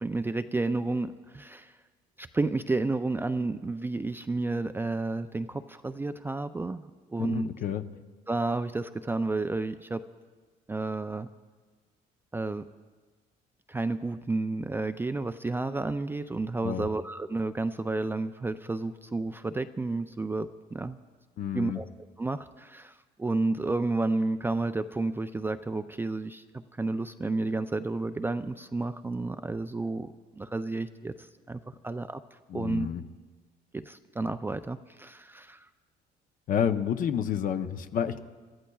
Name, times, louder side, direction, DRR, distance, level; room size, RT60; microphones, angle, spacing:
voice 1, 0.0-1.7 2.2-6.8 7.1-7.5 8.3-10.0 10.7-11.3 12.3-12.6 13.7-21.0 21.5-21.9 22.2-22.9 23.2-26.4 26.8-31.1 31.5-32.2 32.5-32.9 33.7-35.6, right 3 dB, 15° right, 10 dB, 0.3 m, -31 dB
voice 2, 7.2-7.8 16.6-16.8 21.4-21.8 32.5-33.0 36.5-38.2, left 8 dB, 55° left, 9 dB, 0.7 m, -29 dB
27.0 x 13.5 x 2.3 m, 1.4 s
cardioid pair, 110°, 17 cm